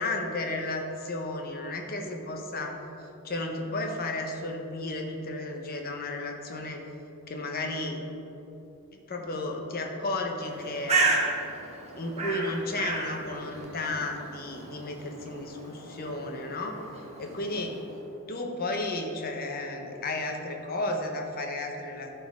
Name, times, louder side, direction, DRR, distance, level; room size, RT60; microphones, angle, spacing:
voice 1, 0.0-2.8 3.2-6.8 7.3-8.0 9.1-11.0 12.0-16.8 17.2-17.8 18.3-22.1, left 2 dB, 45° left, 2 dB, 0.9 m, -33 dB
Bird, 10.4-18.0, right 3 dB, 30° right, 1.1 m, -33 dB
12.5 x 4.4 x 3.6 m, 3.0 s
head